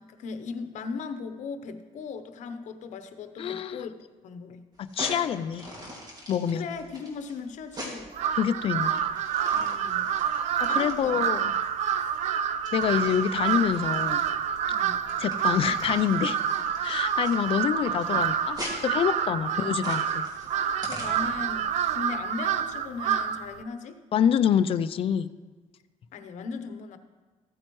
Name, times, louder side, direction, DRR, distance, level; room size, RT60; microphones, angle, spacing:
voice 1, 0.0-3.9 4.2-4.7 6.5-8.1 9.5-10.1 10.5-11.2 11.9-12.2 14.7-15.0 19.4-20.1 20.9-24.0 26.1-27.0, left 5 dB, 70° left, 9 dB, 0.8 m, -38 dB
voice 2, 3.4-3.8 4.8-5.7 6.3-6.7 8.4-9.0 10.6-11.5 12.7-14.2 15.2-16.4 16.8-20.3 24.1-25.3, left 8 dB, 45° left, 13 dB, 0.4 m, -26 dB
sound 1, 4.8-21.5, equal, 30° right, 2.2 m, -43 dB
Crow, 8.1-23.5, right 9 dB, 65° right, 0.5 m, -28 dB
14.5 x 8.8 x 3.1 m, 1.3 s
cardioid pair, 130°, 13 cm